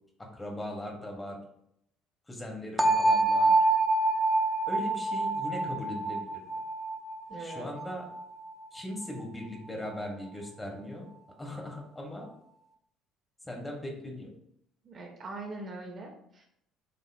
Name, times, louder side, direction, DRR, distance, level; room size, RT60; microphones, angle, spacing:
voice 1, 0.2-1.4 2.3-3.6 4.7-6.4 7.4-8.1 8.7-11.1 11.4-12.3 13.4-14.3, left 1 dB, 15° left, 0 dB, 2.3 m, -39 dB
sound 1, 2.8-8.6, right 2 dB, 20° right, 1.0 m, -27 dB
voice 2, 7.3-7.7 14.8-16.4, right 2 dB, 40° right, 1 dB, 1.6 m, -42 dB
10.0 x 5.4 x 2.2 m, 0.73 s
figure-of-eight pair, 55°, 0 cm